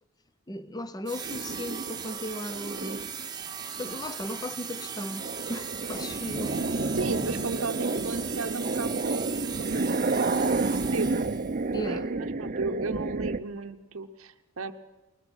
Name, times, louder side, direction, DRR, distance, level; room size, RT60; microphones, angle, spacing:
voice 1, 0.5-3.1 3.8-6.6 11.7-12.1, left 1 dB, 15° left, 0.7 m, -36 dB
sound 1, 1.1-11.6, right 7 dB, 20° right, 1.2 m, -38 dB
sound 2, 1.3-3.3 3.8-4.2 4.6-13.4, right 3 dB, 35° right, 0.6 m, -30 dB
sound 3, 6.2-10.5, right 1 dB, 85° left, 1.8 m, -46 dB
voice 2, 6.9-10.3 10.7-11.1 11.9-14.7, right 3 dB, 70° right, 0.8 m, -34 dB
20.5 x 20.5 x 6.2 m
head